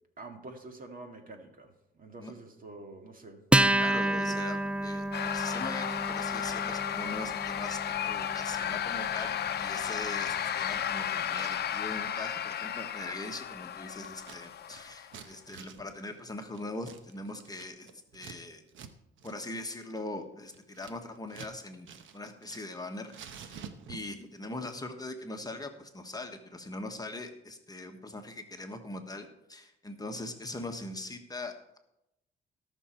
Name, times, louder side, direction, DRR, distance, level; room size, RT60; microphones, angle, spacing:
voice 1, 0.2-3.4, right 2 dB, 45° right, 5 dB, 1.9 m, -47 dB
Acoustic guitar, 3.5-10.4, right 1 dB, 5° right, 0.4 m, -31 dB
voice 2, 3.7-18.6 19.2-23.1 23.4-31.8, left 2 dB, 20° left, 4 dB, 1.4 m, -41 dB
sound 1, 5.1-15.2, left 9 dB, 55° left, 0.7 m, -34 dB
Scissors, 14.0-14.4 14.7-18.4 18.7-18.9 19.2-19.4 19.7-21.6 21.8-22.8 23.1-24.2, right 7 dB, 75° right, 1.1 m, -48 dB
18.0 x 6.2 x 4.4 m, 0.86 s
cardioid pair, 90°, 20 cm